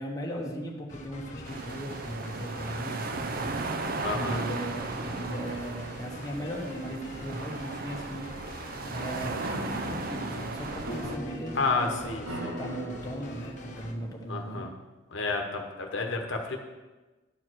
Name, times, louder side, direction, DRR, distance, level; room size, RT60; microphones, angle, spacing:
voice 1, 0.0-12.0 12.3-14.7, equal, 20° left, -2 dB, 1.1 m, -37 dB
sound 1, 0.9-13.9, left 1 dB, 35° left, 0.9 m, -46 dB
sound 2, 1.4-11.2, right 3 dB, 45° right, 0.5 m, -36 dB
voice 2, 4.0-4.4 11.6-12.6 14.3-14.7 15.1-16.6, left 3 dB, 65° left, 3 dB, 1.0 m, -31 dB
sound 3, 9.3-14.6, equal, 85° right, 1.8 m, -40 dB
11.0 x 4.7 x 6.2 m, 1.2 s
head